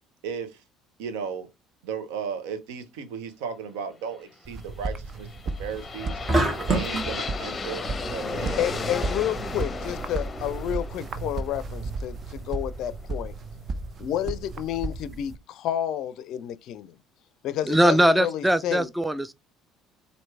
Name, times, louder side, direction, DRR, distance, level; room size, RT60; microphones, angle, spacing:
voice 1, 0.2-0.6 1.0-1.5 1.8-5.3 5.6-6.2 6.7-8.6 14.1-14.4, right 6 dB, 75° right, 0.8 m, -35 dB
sound 1, 4.4-15.4, right 3 dB, 45° right, 0.7 m, -34 dB
sound 2, 5.1-13.1, left 4 dB, 30° left, 0.7 m, -35 dB
sound 3, 6.3-7.1, right 2 dB, 30° right, 1.4 m, -24 dB
voice 2, 8.6-13.3 14.0-17.0 17.4-18.9, left 11 dB, 65° left, 0.4 m, -30 dB
voice 3, 17.7-19.3, right 1 dB, 5° right, 0.4 m, -21 dB
4.5 x 2.7 x 3.2 m
hypercardioid pair, 60°, 0 cm